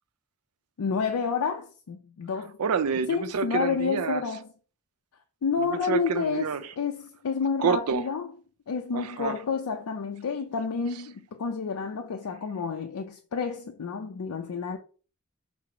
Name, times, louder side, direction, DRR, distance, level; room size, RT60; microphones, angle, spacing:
voice 1, 0.8-2.6 3.1-4.5 5.4-8.3 8.7-14.8, left 5 dB, 85° left, 0.4 m, -29 dB
voice 2, 2.6-4.2 5.9-6.6 7.6-8.0 8.9-9.4, right 6 dB, 85° right, 0.4 m, -28 dB
4.8 x 2.0 x 4.5 m
head